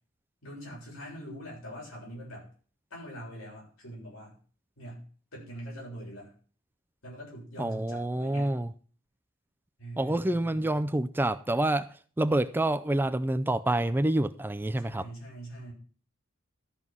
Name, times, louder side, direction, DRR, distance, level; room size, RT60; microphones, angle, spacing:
voice 1, 0.4-2.5 2.9-4.4 4.8-5.0 5.3-6.3 7.0-8.5 9.8-10.8 14.8-15.7, right 1 dB, 80° left, 7.0 m, -43 dB
voice 2, 7.6-8.7 10.0-15.1, right 1 dB, 10° right, 0.4 m, -27 dB
13.0 x 5.5 x 6.0 m
head